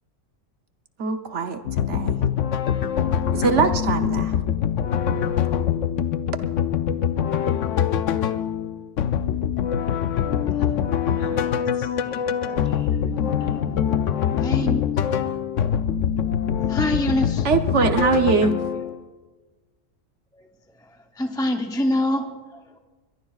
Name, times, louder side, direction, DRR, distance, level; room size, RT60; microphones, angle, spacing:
voice 1, 1.0-2.2 3.3-4.4 17.4-18.6, right 5 dB, 65° right, 7 dB, 1.2 m, -22 dB
sound 1, 1.7-19.0, left 8 dB, 70° left, 1.0 m, -24 dB
voice 2, 11.0-13.7, equal, 45° left, 2 dB, 2.9 m, -40 dB
voice 3, 14.4-14.9 16.7-17.5 21.2-22.8, left 1 dB, 5° left, 4 dB, 0.5 m, -25 dB
22.5 x 22.0 x 2.4 m, 1.3 s
omnidirectional pair, 1.3 m